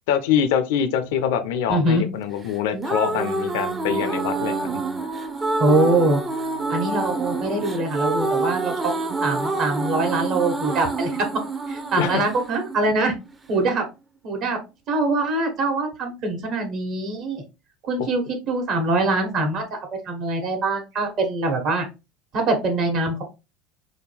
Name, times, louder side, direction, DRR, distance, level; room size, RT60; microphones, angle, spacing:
voice 1, 0.1-4.8 12.0-12.2 18.0-18.1, left 8 dB, 75° left, 0.5 m, -24 dB
sound 1, 1.0-2.3 3.0-5.1 5.7-7.7 8.5-10.5, right 6 dB, 70° right, 0.8 m, -42 dB
voice 2, 1.7-2.0 5.6-6.2 6.7-8.9 9.2-11.3 11.7-13.1 13.5-13.9 14.2-14.6 14.9-17.4 17.9-19.8 20.0-21.8 22.3-23.2, right 2 dB, 55° right, 1.2 m, -23 dB
sound 2, 2.5-13.5, right 3 dB, 20° right, 0.5 m, -27 dB
3.6 x 2.2 x 3.2 m
hypercardioid pair, 85°, 0 cm